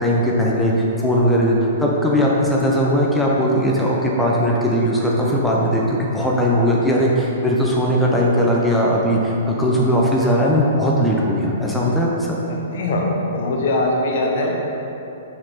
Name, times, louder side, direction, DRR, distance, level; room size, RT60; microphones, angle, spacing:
voice 1, 0.0-12.4, equal, 5° left, -4 dB, 0.8 m, -18 dB
voice 2, 12.7-14.5, left 2 dB, 50° left, 0 dB, 1.1 m, -21 dB
6.3 x 6.1 x 4.1 m, 2.9 s
figure-of-eight pair, 110°, 0 cm